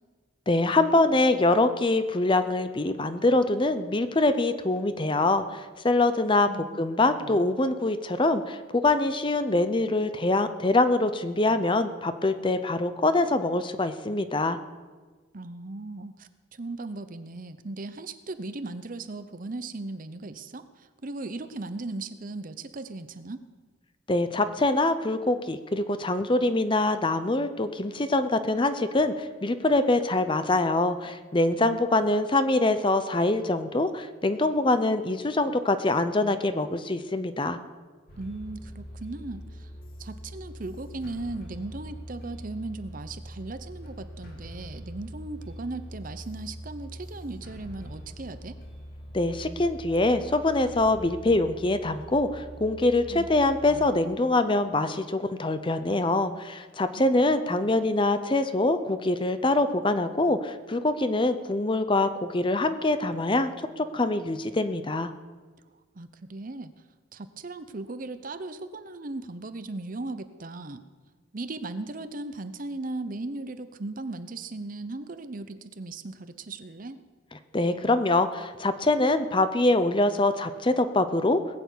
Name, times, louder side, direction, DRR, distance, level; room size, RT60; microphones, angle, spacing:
voice 1, 0.5-14.6 24.1-37.6 49.1-65.1 77.5-81.4, left 2 dB, 25° left, 10 dB, 0.7 m, -24 dB
voice 2, 6.5-6.8 7.2-7.4 15.3-23.4 38.2-39.7 40.0-48.6 53.1-53.3 53.7-53.9 56.9-57.0 57.5-57.7 65.9-66.7 67.1-70.8 71.3-77.0, right 2 dB, 45° right, 11 dB, 0.8 m, -37 dB
sound 1, 38.1-53.8, equal, 50° left, 2.8 m, -43 dB
19.5 x 6.9 x 8.3 m, 1.4 s
head